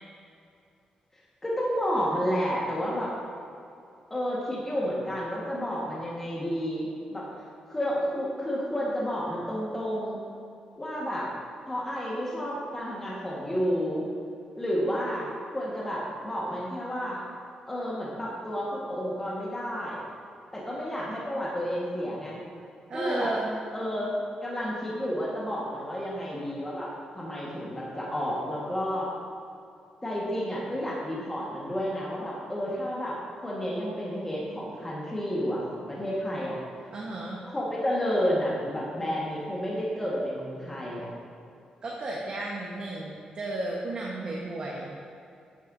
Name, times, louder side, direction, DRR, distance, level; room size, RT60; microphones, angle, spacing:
voice 1, 1.4-3.1 4.1-7.2 7.7-10.2 10.8-11.3 11.7-14.1 14.6-17.2 17.7-20.0 20.5-22.4 22.9-23.3 23.7-24.1 24.4-26.9 27.1-29.1 30.0-36.6 37.5-41.1, equal, 15° left, -5 dB, 1.4 m, -31 dB
voice 2, 22.9-23.5 36.9-37.4 41.8-45.0, right 2 dB, 45° right, -4 dB, 1.1 m, -33 dB
9.0 x 8.2 x 2.6 m, 2.6 s
cardioid pair, 125°, 2 cm